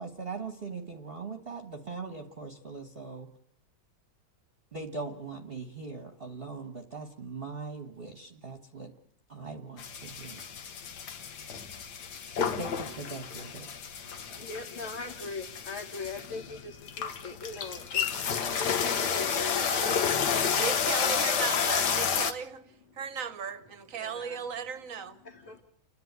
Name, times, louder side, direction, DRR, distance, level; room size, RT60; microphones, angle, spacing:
voice 1, 0.0-3.3 4.7-8.9 9.3-10.4 12.3-13.7 14.3-14.4, right 4 dB, 35° right, 1.5 m, -40 dB
sound 1, 9.8-22.3, left 7 dB, 60° left, 1.7 m, -31 dB
voice 2, 14.0-21.1 21.5-21.6 23.9-24.4 25.2-25.6, left 3 dB, 40° left, 2.1 m, -41 dB
voice 3, 20.6-25.2, right 7 dB, 50° right, 1.4 m, -36 dB
29.5 x 10.5 x 9.5 m
omnidirectional pair, 2.0 m